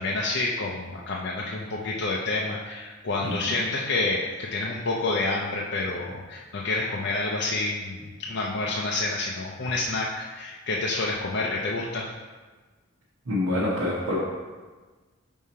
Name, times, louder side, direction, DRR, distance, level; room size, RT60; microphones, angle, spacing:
voice 1, 0.0-12.1, left 2 dB, 55° left, -2 dB, 0.5 m, -28 dB
voice 2, 13.3-14.2, left 1 dB, 85° right, -7 dB, 1.1 m, -26 dB
5.5 x 4.7 x 4.2 m, 1.4 s
head